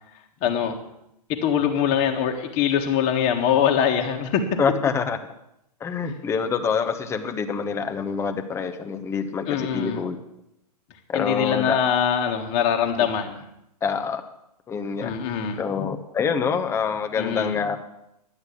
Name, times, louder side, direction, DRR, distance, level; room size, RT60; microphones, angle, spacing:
voice 1, 0.4-0.7 1.4-4.4 9.5-10.0 11.1-13.4 15.0-15.6 17.2-17.6, left 8 dB, 35° left, 3 dB, 1.6 m, -23 dB
voice 2, 4.6-5.2 5.8-10.2 11.1-11.8 13.8-14.2 14.7-15.1 15.6-17.8, left 6 dB, 15° left, 7 dB, 0.9 m, -26 dB
11.5 x 8.1 x 8.4 m, 0.82 s
hypercardioid pair, 125°, 21 cm